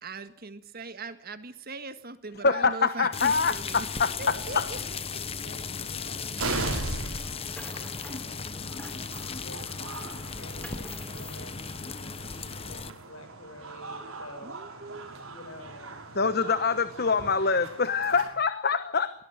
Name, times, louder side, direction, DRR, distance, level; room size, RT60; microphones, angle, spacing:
voice 1, 0.0-3.9 4.2-4.8 5.1-5.2 7.1-7.3 14.4-15.1, right 3 dB, 45° right, 11 dB, 1.7 m, -40 dB
voice 2, 2.4-4.7 16.2-19.1, left 5 dB, 45° left, 12 dB, 1.1 m, -25 dB
sound 1, 3.0-3.2 4.1-4.2 4.5-4.6 5.8-5.9 6.3-18.3, right 2 dB, 75° right, 6.3 m, -39 dB
sound 2, 3.1-12.9, left 5 dB, 25° left, 1.0 m, -36 dB
voice 3, 4.3-5.2 5.4-9.8 10.3-11.8 12.2-14.6 15.3-16.8 17.2-17.3, left 1 dB, 70° left, 8 dB, 6.9 m, -49 dB
sound 3, 7.3-8.3 8.6-9.5 9.9-11.4, left 1 dB, 5° left, 3.4 m, -47 dB
23.0 x 18.5 x 8.1 m, 0.66 s
head